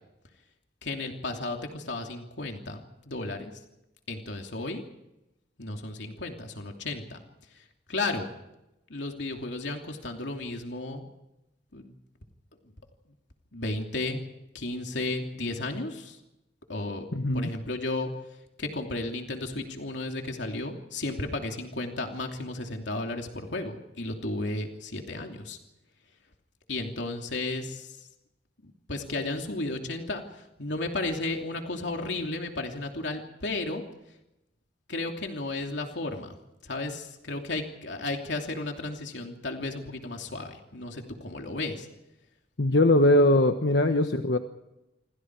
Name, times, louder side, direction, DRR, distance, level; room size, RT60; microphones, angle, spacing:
voice 1, 0.8-3.5 4.1-4.8 5.6-7.2 7.5-8.3 8.9-11.1 11.7-11.9 13.5-14.2 14.5-16.2 16.7-17.1 17.3-18.1 18.6-25.6 26.7-28.0 28.6-33.8 34.9-36.3 36.6-41.9, left 2 dB, 90° left, 3 dB, 2.9 m, -34 dB
voice 2, 17.1-17.5 42.6-44.4, left 1 dB, 70° left, 6 dB, 1.3 m, -21 dB
28.5 x 25.0 x 4.8 m, 0.92 s
head